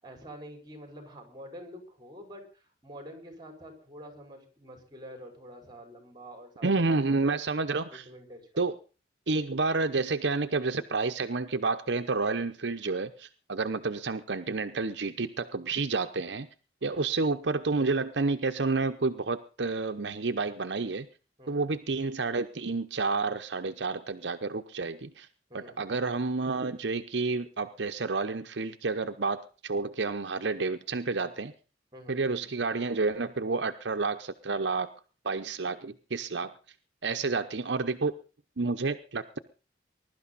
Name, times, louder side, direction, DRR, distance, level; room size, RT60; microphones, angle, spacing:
voice 1, 0.0-7.4 7.9-8.6 16.8-17.1 21.4-21.7 25.5-25.8 31.9-32.2, equal, 25° right, 4 dB, 5.2 m, -47 dB
voice 2, 6.6-8.1 8.6-8.7 9.3-16.5 16.8-21.1 21.5-25.3 25.5-31.5 32.1-34.9 35.2-36.5 37.0-38.1 38.6-39.4, right 3 dB, 70° right, 8 dB, 0.8 m, -30 dB
21.5 x 12.0 x 4.1 m, 0.35 s
head